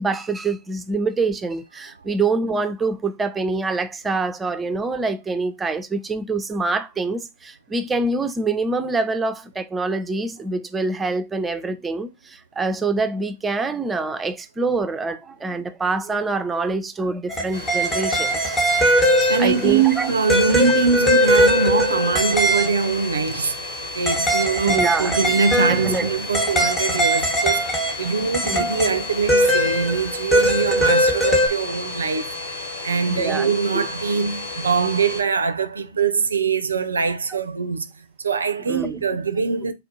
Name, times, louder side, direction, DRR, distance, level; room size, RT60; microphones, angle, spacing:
voice 1, 0.0-18.6 19.4-20.1 24.6-25.2 25.7-26.1 28.4-28.7 33.1-33.9 38.7-39.0, right 3 dB, 15° right, 0.5 m, -25 dB
sound 1, 17.3-19.8 20.3-22.8 24.1-28.1 28.3-31.5, equal, 20° left, 1.0 m, -20 dB
Domestic sounds home sounds, 17.5-35.2, left 2 dB, 70° left, 1.8 m, -33 dB
voice 2, 19.3-23.6 23.9-32.4 32.8-37.9 38.2-39.7, right 5 dB, 80° right, 0.4 m, -22 dB
4.2 x 2.5 x 2.6 m
figure-of-eight pair, 100°, 0 cm